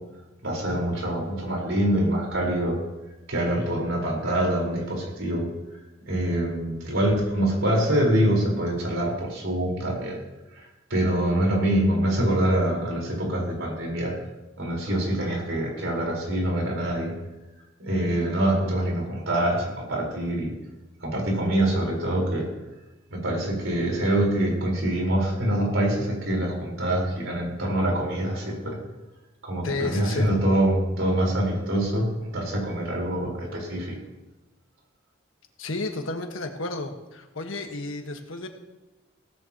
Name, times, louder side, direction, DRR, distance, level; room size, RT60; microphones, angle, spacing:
voice 1, 0.4-2.8 3.3-5.5 6.1-10.2 10.9-14.2 14.6-17.1 17.8-20.5 21.0-22.5 23.1-28.8 29.4-34.0, right 1 dB, 85° right, -1 dB, 4.3 m, -25 dB
voice 2, 29.6-30.3 35.6-38.5, left 2 dB, 90° left, 4 dB, 1.4 m, -32 dB
17.0 x 13.5 x 2.9 m, 1.1 s
head